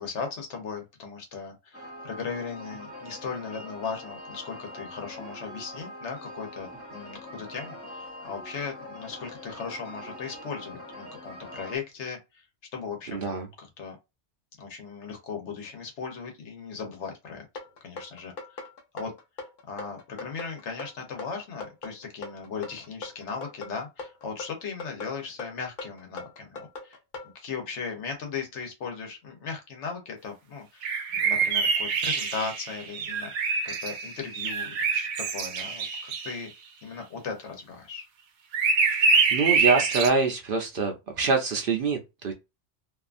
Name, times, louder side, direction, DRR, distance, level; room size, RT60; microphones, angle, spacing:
voice 1, 0.0-12.4 12.7-14.0 14.6-17.4 17.8-18.6 18.9-19.1 19.7-27.0 27.3-36.5 36.8-38.0, left 5 dB, 75° left, 1.2 m, -37 dB
sound 1, 1.7-11.8, left 1 dB, 15° left, 0.5 m, -43 dB
voice 2, 13.1-13.5 38.9-42.3, right 4 dB, 60° right, 0.7 m, -26 dB
sound 2, 17.6-27.3, left 3 dB, 50° left, 0.7 m, -40 dB
sound 3, 30.8-36.3 38.5-40.1, right 5 dB, 80° right, 0.9 m, -25 dB
2.7 x 2.3 x 2.4 m
omnidirectional pair, 1.2 m